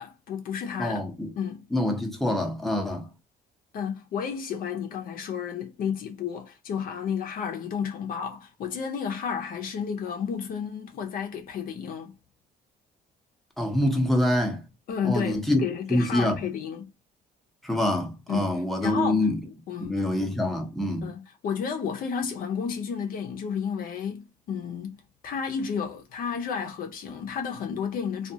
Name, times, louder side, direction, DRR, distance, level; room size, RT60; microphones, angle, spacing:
voice 1, 0.0-1.0 1.4-1.7 3.7-12.1 14.9-16.9 18.3-20.3 21.0-28.3, left 7 dB, 55° left, 0.6 m, -32 dB
voice 2, 0.8-1.3 1.7-3.1 13.6-14.6 15.0-15.6 15.9-16.4 17.6-19.4 19.8-21.1, left 1 dB, ahead, 0.7 m, -25 dB
2.3 x 2.3 x 2.6 m
cardioid pair, 110°, 17 cm